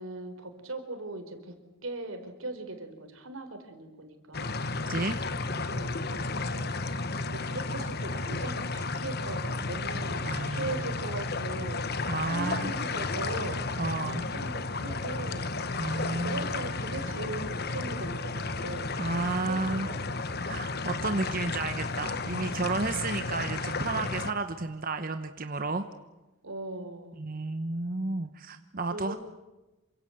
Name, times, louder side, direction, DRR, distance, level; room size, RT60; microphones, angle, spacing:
voice 1, 0.0-1.6 1.8-4.6 5.3-11.9 12.2-13.7 14.1-15.5 16.2-18.9 19.2-20.0 26.4-27.1 28.9-29.2, right 2 dB, 90° right, 7 dB, 4.4 m, -40 dB
sound 1, 4.3-24.3, left 3 dB, 50° left, 1.3 m, -33 dB
voice 2, 4.9-5.2 10.2-10.7 12.1-12.7 13.8-14.2 15.7-16.5 19.0-19.9 20.4-25.8 27.2-29.1, right 3 dB, 45° right, 8 dB, 1.1 m, -32 dB
28.0 x 25.0 x 8.0 m, 1.1 s
head